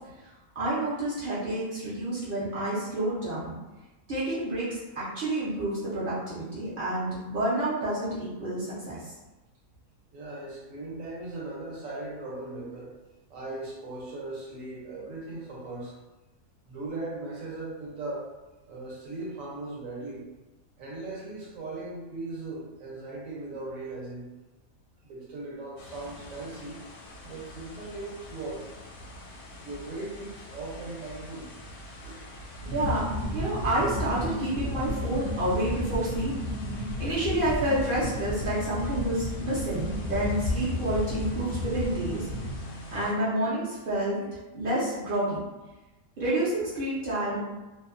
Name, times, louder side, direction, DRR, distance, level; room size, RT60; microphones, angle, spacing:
voice 1, 0.6-3.6 4.1-9.1 32.7-33.0 33.3-36.3 36.8-42.3 42.9-44.2 44.5-45.4 46.2-47.4, right 1 dB, 55° right, -9 dB, 0.6 m, -29 dB
voice 2, 10.1-12.9 13.3-16.0 16.7-18.3 18.7-20.3 20.8-24.3 25.1-26.8 27.2-28.7 29.6-31.5 32.0-32.2, right 2 dB, 70° right, -4 dB, 1.0 m, -38 dB
sound 1, 25.8-43.1, left 1 dB, 85° left, 1.0 m, -44 dB
sound 2, 32.6-42.6, left 1 dB, 60° left, 0.6 m, -33 dB
2.6 x 2.1 x 2.4 m, 1.1 s
omnidirectional pair, 1.5 m